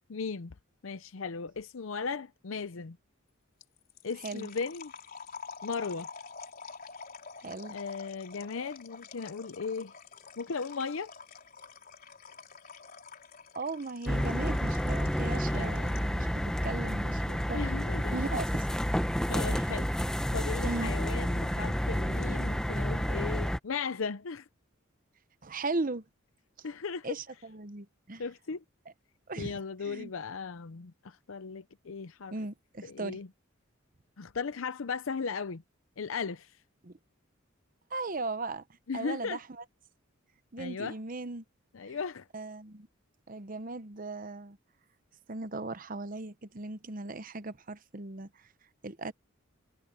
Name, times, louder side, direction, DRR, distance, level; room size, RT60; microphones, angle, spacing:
voice 1, 0.1-0.6 0.8-3.0 4.0-4.9 5.6-6.1 7.7-9.9 10.4-11.1 15.5-15.7 17.5-18.4 19.3-19.9 20.3-24.5 26.6-27.1 28.2-28.6 29.4-32.3 32.8-33.3 34.2-35.6 36.0-36.6 38.9-39.4 40.6-41.0 41.7-42.3, left 5 dB, 75° left, 0.6 m, -37 dB
sound 1, 3.6-16.2, left 5 dB, 45° left, 4.2 m, -48 dB
voice 2, 4.2-4.5 7.4-7.8 13.5-17.7 18.1-18.6 19.5-19.7 20.6-20.9 25.4-26.0 27.0-28.2 29.3-30.1 32.3-33.2 36.8-36.9 37.9-38.6 38.9-39.6 40.5-41.4 41.9-42.0 42.3-42.9 43.3-44.6 45.3-48.5 48.8-49.1, right 3 dB, 40° right, 0.9 m, -38 dB
sound 2, 14.1-23.6, equal, 5° left, 0.8 m, -30 dB
head